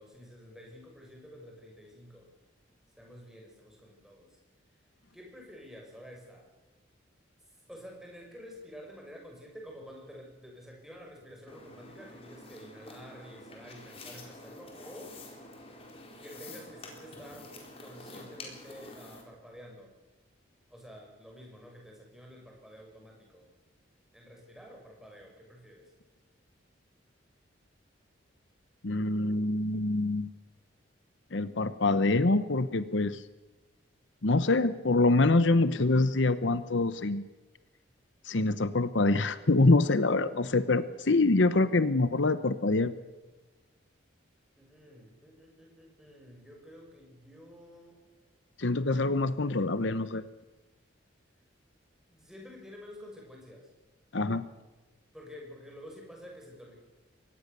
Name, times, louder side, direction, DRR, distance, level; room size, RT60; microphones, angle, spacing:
voice 1, 0.0-2.3 3.0-4.4 5.1-6.5 7.7-15.2 16.2-20.0 20.7-23.5 24.1-25.9 44.5-48.0 52.1-53.7 55.1-56.8, equal, ahead, 0 dB, 6.2 m, -50 dB
sound 1, 11.5-19.2, left 2 dB, 30° left, 4.2 m, -48 dB
voice 2, 28.8-30.3 31.3-33.2 34.2-37.2 38.2-42.9 48.6-50.2 54.1-54.4, left 2 dB, 70° left, 13 dB, 0.9 m, -25 dB
23.5 x 19.0 x 6.8 m, 1.2 s
head